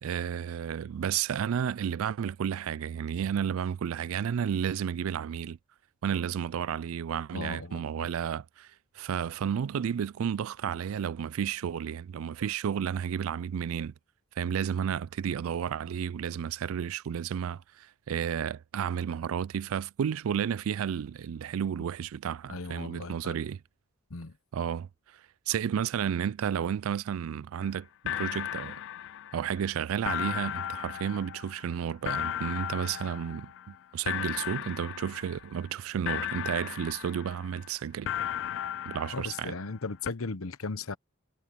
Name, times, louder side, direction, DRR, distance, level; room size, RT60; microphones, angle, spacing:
voice 1, 0.0-5.6 6.0-8.7 9.0-13.9 14.4-23.6 24.5-24.9 25.5-28.8 29.3-38.1 38.9-39.6, right 8 dB, 80° right, 0.4 m, -32 dB
voice 2, 7.3-8.1 22.5-23.3 24.1-24.4 39.1-41.0, left 3 dB, 85° left, 1.0 m, -37 dB
sound 1, 27.6-27.7 28.1-29.7 30.1-33.8 34.1-35.7 36.1-37.7 38.1-39.8 40.1-40.2, left 11 dB, 60° left, 0.3 m, -36 dB
head